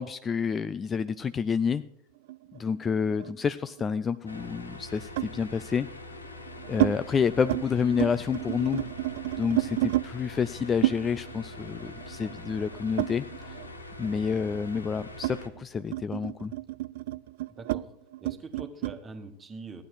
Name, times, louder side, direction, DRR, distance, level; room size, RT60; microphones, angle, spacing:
voice 1, 0.0-1.8 2.5-5.9 6.7-8.9 9.4-13.3 14.0-16.5, left 6 dB, 20° left, 14 dB, 0.4 m, -29 dB
sound 1, 2.3-3.9 5.2-5.4 6.1-6.9 7.3-7.6 7.9-10.1 10.8-13.7 14.0-19.0, right 17 dB, 55° right, 0.4 m, -31 dB
sound 2, 4.3-15.5, left 2 dB, 80° left, 1.1 m, -43 dB
voice 2, 17.5-17.9 18.2-19.8, right 3 dB, 20° right, 7 dB, 1.5 m, -43 dB
15.0 x 9.9 x 4.8 m, 0.72 s
figure-of-eight pair, 85°, 0 cm